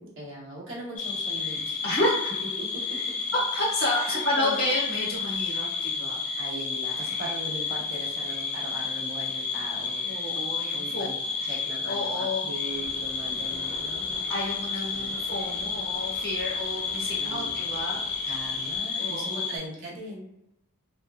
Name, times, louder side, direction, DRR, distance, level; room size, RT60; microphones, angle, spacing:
voice 1, 0.0-1.8 2.7-2.8 3.9-4.7 6.4-10.1 10.7-11.2 11.4-14.1 14.9-15.1 17.2-17.5 18.2-20.3, right 1 dB, 60° right, -6 dB, 0.9 m, -39 dB
sound 1, 1.0-19.6, left 5 dB, 90° left, 1.1 m, -31 dB
voice 2, 3.3-6.2 10.1-11.1 11.9-12.5 14.0-18.3 18.9-19.6, left 1 dB, 45° left, -7 dB, 0.9 m, -30 dB
sound 2, 12.7-18.8, left 2 dB, 65° left, 0.4 m, -46 dB
2.8 x 2.3 x 2.3 m, 0.89 s
head